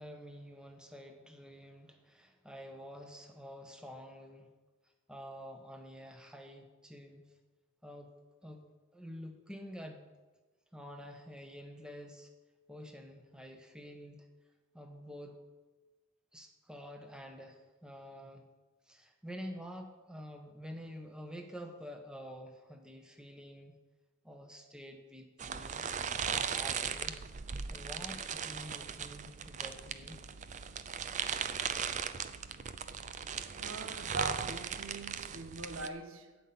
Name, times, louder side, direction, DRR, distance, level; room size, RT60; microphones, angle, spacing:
voice 1, 0.0-4.5 5.1-7.3 7.8-8.1 8.4-8.7 8.9-10.0 10.7-12.3 12.7-14.3 14.7-15.4 16.3-18.5 18.9-23.8 24.2-25.9 26.3-27.2 27.7-30.2, equal, 5° right, 1.1 m, -48 dB
sound 1, 25.4-35.9, right 7 dB, 35° right, 0.5 m, -38 dB
voice 2, 33.5-36.4, right 3 dB, 80° right, 1.1 m, -42 dB
12.0 x 5.7 x 8.5 m
head